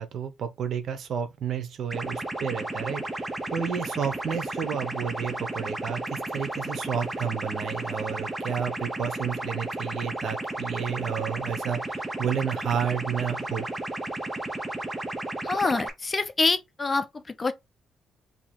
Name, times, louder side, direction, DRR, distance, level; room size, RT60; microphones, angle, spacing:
voice 1, 0.0-13.7, right 8 dB, 60° right, 0.8 m, -31 dB
sound 1, 1.9-15.9, right 2 dB, 15° right, 0.8 m, -33 dB
voice 2, 15.4-17.5, left 3 dB, 30° left, 0.6 m, -26 dB
2.9 x 2.7 x 4.2 m
cardioid pair, 90°, 0 cm